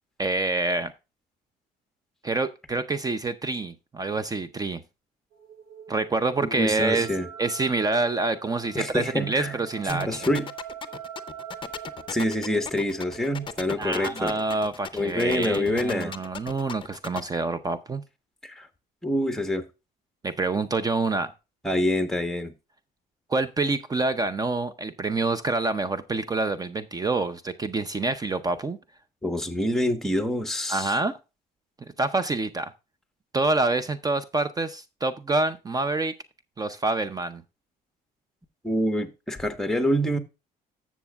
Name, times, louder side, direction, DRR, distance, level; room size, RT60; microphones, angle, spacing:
voice 1, 0.2-0.9 2.2-4.8 5.9-7.1 7.4-10.2 13.8-18.0 20.2-21.3 23.3-28.8 30.7-31.2 32.0-32.7 33.3-36.1 36.6-37.4, right 3 dB, 20° right, 0.6 m, -27 dB
sound 1, 5.3-13.9, right 8 dB, 65° right, 3.8 m, -44 dB
voice 2, 6.4-7.3 8.7-9.5 9.9-10.5 12.1-14.4 14.9-16.1 18.4-18.7 19.0-19.6 21.6-22.5 29.2-31.0 38.6-40.2, left 1 dB, ahead, 1.2 m, -26 dB
sound 2, 9.9-17.2, left 7 dB, 30° left, 0.6 m, -36 dB
13.0 x 7.2 x 2.4 m
cardioid pair, 110°, 17 cm